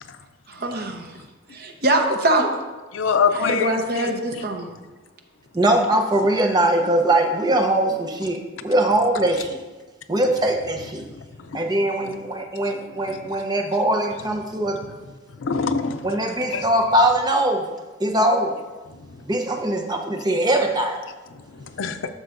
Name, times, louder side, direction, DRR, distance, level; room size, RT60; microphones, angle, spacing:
voice 1, 0.5-1.1 1.5-2.5 3.3-4.7, right 1 dB, 50° right, 3 dB, 0.9 m, -23 dB
voice 2, 2.9-4.1 15.4-16.1 16.5-16.6 21.8-22.0, left 5 dB, 90° left, 9 dB, 0.6 m, -23 dB
voice 3, 5.5-9.6 10.1-11.0 11.5-14.8 16.0-17.7 18.0-18.6 19.3-21.0, right 1 dB, 20° right, 3 dB, 0.8 m, -21 dB
12.5 x 6.5 x 2.6 m, 1.2 s
head